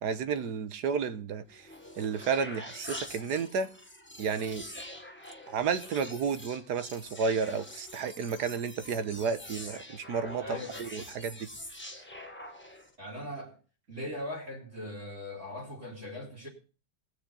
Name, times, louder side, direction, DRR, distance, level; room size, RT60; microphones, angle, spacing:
voice 1, 0.0-1.7 2.0-3.7 4.2-4.7 5.5-11.5, right 5 dB, 70° right, 1.5 m, -32 dB
sound 1, 1.5-12.9, left 1 dB, 5° left, 1.6 m, -45 dB
voice 2, 10.4-10.8 13.0-13.6 13.9-16.5, left 1 dB, 40° right, 3.9 m, -40 dB
19.0 x 6.4 x 5.5 m
omnidirectional pair, 1.9 m